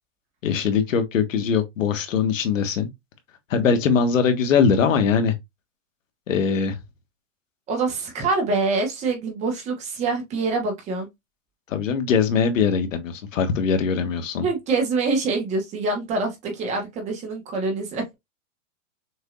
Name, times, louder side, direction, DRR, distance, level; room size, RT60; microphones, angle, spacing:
voice 1, 0.4-2.9 3.5-5.3 6.3-6.8 11.7-14.4, left 6 dB, 80° left, 1.5 m, -21 dB
voice 2, 7.7-11.1 14.4-18.1, right 3 dB, 20° right, 1.2 m, -25 dB
6.3 x 2.9 x 2.5 m
supercardioid pair, 165°, 38 cm